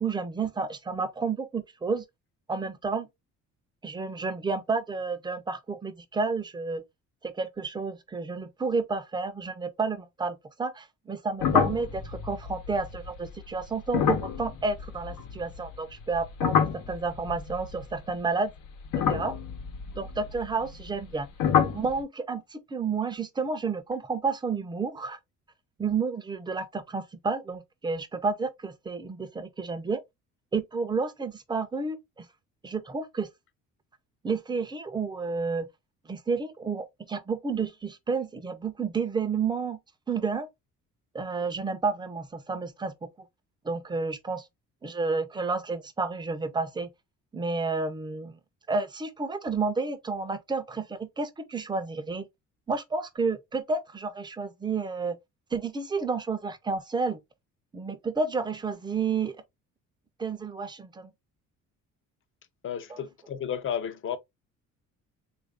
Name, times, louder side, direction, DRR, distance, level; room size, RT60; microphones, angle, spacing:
voice 1, 0.0-2.0 2.5-3.1 3.8-6.8 7.2-16.6 16.9-18.5 19.1-19.3 20.0-21.3 21.7-25.2 25.8-30.0 30.5-32.2 32.6-33.3 34.2-35.7 36.1-39.8 40.1-40.5 41.1-42.9 43.6-44.5 44.8-46.9 47.3-48.4 48.7-52.3 52.7-55.2 55.5-57.2 57.7-59.4 60.2-61.1 62.9-63.0, right 4 dB, 15° right, 0.5 m, -30 dB
sound 1, 11.4-15.7 16.0-18.2 18.8-21.1 21.4-21.9, left 7 dB, 85° left, 1.0 m, -28 dB
voice 2, 62.6-64.2, left 8 dB, 40° left, 0.6 m, -32 dB
3.4 x 2.5 x 3.3 m
cardioid pair, 135°, 31 cm